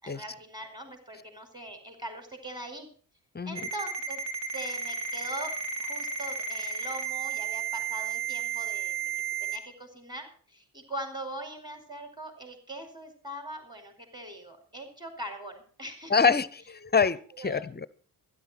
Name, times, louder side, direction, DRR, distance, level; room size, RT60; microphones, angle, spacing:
voice 1, 0.0-2.9 3.4-4.2 4.5-16.1 17.3-17.6, right 1 dB, 10° right, 5.0 m, -41 dB
Ringtone, 3.6-9.6, right 6 dB, 85° right, 2.9 m, -33 dB
voice 2, 16.1-17.9, left 5 dB, 25° left, 0.7 m, -25 dB
12.5 x 11.0 x 5.8 m
cardioid pair, 80°, 43 cm